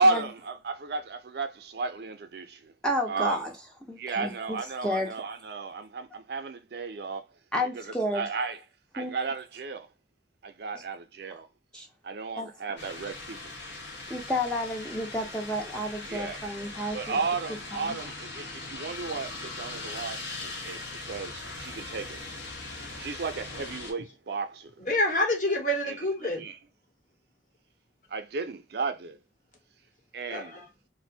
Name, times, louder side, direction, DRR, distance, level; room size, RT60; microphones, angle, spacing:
voice 1, 0.0-2.7 3.1-3.4 4.0-7.3 7.7-8.6 8.9-9.9 10.4-11.5 12.0-13.6 16.0-16.4 16.9-22.2 23.0-24.7 25.8-26.0 26.4-26.6 28.1-29.2 30.1-30.6, right 3 dB, 60° right, 0.4 m, -33 dB
voice 2, 2.8-3.5 3.8-5.1 7.5-8.2 9.0-9.1 11.7-11.9 12.4-12.5 14.1-17.2 17.7-18.0, left 1 dB, 5° left, 0.5 m, -31 dB
southcarolina florencethlcenter, 12.8-23.9, left 3 dB, 80° left, 0.9 m, -40 dB
voice 3, 24.8-26.5 30.3-30.7, left 1 dB, 50° left, 1.0 m, -27 dB
2.5 x 2.1 x 2.6 m
head